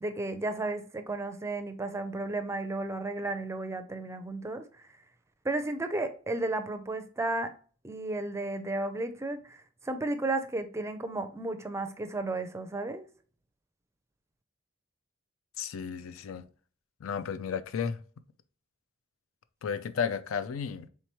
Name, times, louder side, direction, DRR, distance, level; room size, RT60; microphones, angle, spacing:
voice 1, 0.0-4.7 5.4-7.5 7.8-13.0, right 2 dB, 15° right, 0.4 m, -33 dB
voice 2, 15.6-16.5 17.0-18.0 19.6-20.9, left 6 dB, 75° left, 0.4 m, -33 dB
4.5 x 3.5 x 3.0 m
head